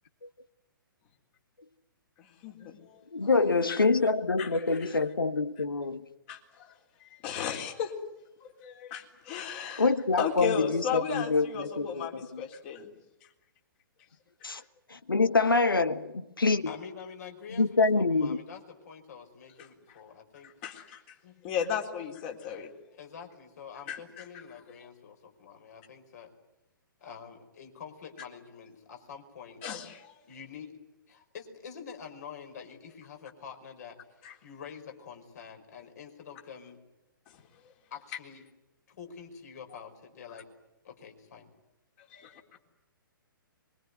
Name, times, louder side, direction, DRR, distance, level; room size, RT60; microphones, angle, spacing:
voice 1, 2.2-3.3 3.7-3.9 4.4-5.1 5.6-5.7 6.3-7.9 8.4-12.9 13.2-13.3 14.4-14.7 19.6-20.0 20.4-21.2 21.4-22.7 23.9-24.9 29.6-30.3 34.2-34.4 37.3-37.7 40.3-40.4 42.0-42.6, left 7 dB, 30° left, 4.0 m, -37 dB
voice 2, 3.1-6.0 9.8-11.9 14.4-14.6 15.1-16.7 17.5-18.4, left 3 dB, 75° left, 1.5 m, -25 dB
voice 3, 16.7-20.5 21.2-21.4 22.9-26.3 27.0-29.6 30.3-30.8 31.1-34.0 34.4-36.8 37.9-38.4 38.9-40.5 40.8-41.5, left 6 dB, 50° left, 5.2 m, -46 dB
24.5 x 23.5 x 9.5 m
figure-of-eight pair, 120°, 12 cm